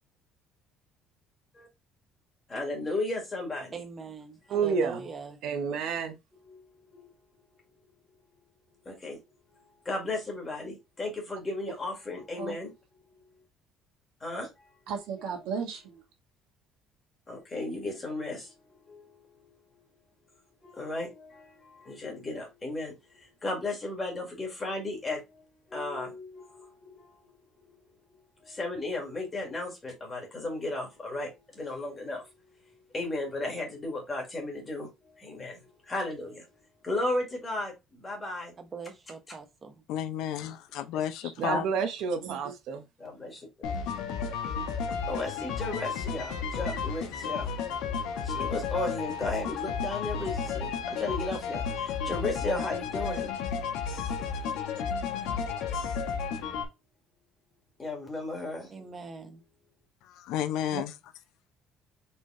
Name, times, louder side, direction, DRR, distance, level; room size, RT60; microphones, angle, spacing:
voice 1, 2.5-3.8 6.5-6.6 6.9-7.1 8.9-9.2 9.9-12.7 14.2-14.7 17.3-18.5 18.8-19.5 20.6-25.4 25.7-27.3 27.7-27.8 28.4-32.2 32.9-34.9 35.2-36.5 36.8-38.5 40.9-41.0 43.0-43.3 45.1-47.5 48.2-53.3 55.1-55.3 57.8-58.7, left 2 dB, 20° left, 1.7 m, -35 dB
voice 2, 3.7-5.4 38.6-39.8 58.7-59.4, right 4 dB, 20° right, 0.9 m, -42 dB
voice 3, 4.5-5.0 5.4-6.2 41.4-42.8, right 6 dB, 60° right, 0.8 m, -29 dB
voice 4, 14.9-16.0 41.2-41.6 42.2-42.5 60.7-60.8, right 5 dB, 85° right, 1.7 m, -35 dB
voice 5, 39.9-41.7 60.0-60.9, left 10 dB, 65° left, 0.5 m, -32 dB
sound 1, 43.6-56.6, left 6 dB, 85° left, 1.2 m, -32 dB
4.4 x 3.3 x 3.7 m
cardioid pair, 170°, 0 cm